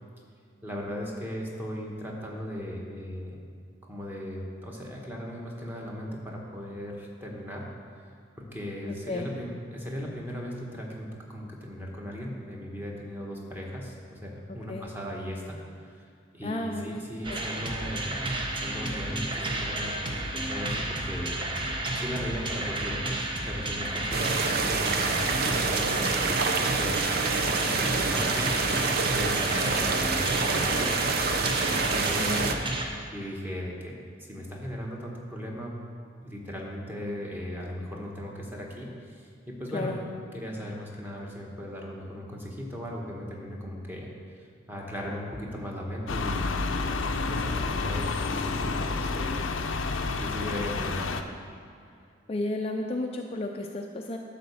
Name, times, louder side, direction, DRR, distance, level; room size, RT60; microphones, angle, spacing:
voice 1, 0.6-3.4 3.9-7.6 8.4-15.6 15.8-16.0 16.3-18.1 18.5-21.4 21.9-32.7 33.1-33.9 34.2-35.7 36.2-40.0 40.3-44.1 44.7-49.5 50.2-51.1, equal, 10° right, -2 dB, 1.3 m, -37 dB
voice 2, 8.9-9.3 14.5-14.9 16.4-17.0 17.3-17.4 32.0-32.5 39.7-40.0 52.3-54.2, left 2 dB, 30° left, 2 dB, 0.4 m, -33 dB
sound 1, 17.2-32.9, right 1 dB, 25° right, 0.9 m, -32 dB
sound 2, 24.1-32.5, right 4 dB, 50° right, 0.6 m, -27 dB
sound 3, 46.1-51.2, left 3 dB, 85° left, 0.6 m, -29 dB
11.0 x 4.1 x 7.0 m, 2.4 s
head